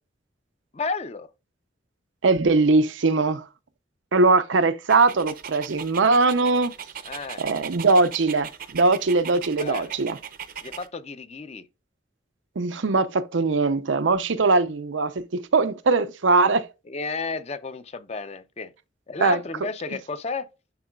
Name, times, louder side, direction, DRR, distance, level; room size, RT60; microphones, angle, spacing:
voice 1, 0.7-1.3 7.1-7.4 9.6-10.0 10.6-11.6 16.9-18.7 19.1-20.5, left 4 dB, 35° left, 0.6 m, -32 dB
voice 2, 2.2-3.4 4.1-6.7 7.4-10.2 12.6-16.7 19.2-19.4, right 3 dB, 90° right, 0.6 m, -21 dB
Dog, 4.9-10.9, right 8 dB, 50° right, 0.6 m, -39 dB
10.5 x 3.9 x 2.3 m
head